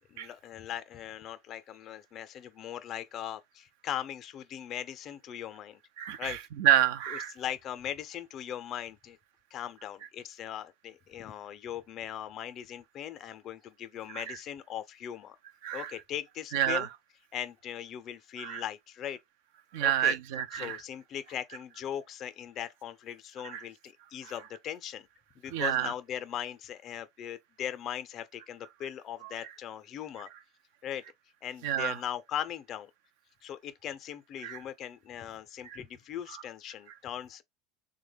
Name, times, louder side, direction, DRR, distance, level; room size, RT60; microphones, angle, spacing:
voice 1, 0.0-5.8 6.2-6.4 7.1-9.2 9.5-15.4 15.7-16.9 17.3-19.2 19.8-20.2 20.5-25.1 25.4-30.3 30.8-31.0 31.4-32.9 33.4-37.4, left 10 dB, 40° left, 0.4 m, -39 dB
voice 2, 6.0-7.3 14.1-14.4 15.6-15.9 16.5-16.9 18.4-18.6 19.7-20.8 23.4-23.6 25.5-25.9 31.6-32.0 34.4-34.6 35.6-35.8 36.3-36.4, right 11 dB, 75° right, 0.4 m, -29 dB
3.3 x 2.1 x 3.3 m
supercardioid pair, 120°, 0 cm